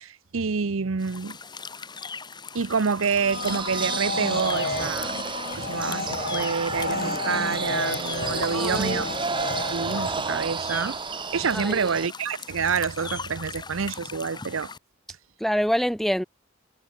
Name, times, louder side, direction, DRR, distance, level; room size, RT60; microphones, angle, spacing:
voice 1, 0.0-1.4 2.5-5.1 5.5-9.1 9.7-11.0 11.3-14.7, right 5 dB, 90° right, 0.7 m, -27 dB
sound 1, 1.0-14.8, left 5 dB, 20° left, 2.5 m, -40 dB
sound 2, 3.0-10.4, left 3 dB, 50° left, 3.2 m, -32 dB
sound 3, 3.3-12.1, right 4 dB, 25° right, 1.1 m, -31 dB
voice 2, 8.5-9.0 11.5-11.8 15.4-16.2, equal, ahead, 0.9 m, -25 dB
head